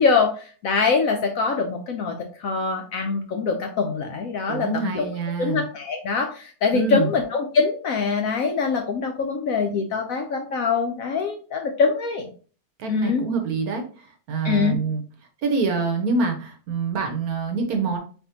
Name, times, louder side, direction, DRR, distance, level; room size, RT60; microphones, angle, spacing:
voice 1, 0.0-2.1 2.4-5.0 5.4-12.3 12.9-13.2 14.4-14.8, left 5 dB, 70° left, 3 dB, 0.9 m, -23 dB
voice 2, 4.5-5.6 6.7-7.1 12.8-13.8 14.3-15.0 15.4-18.0, right 3 dB, 65° right, 4 dB, 1.1 m, -25 dB
4.2 x 3.4 x 2.8 m, 0.39 s
omnidirectional pair, 1.9 m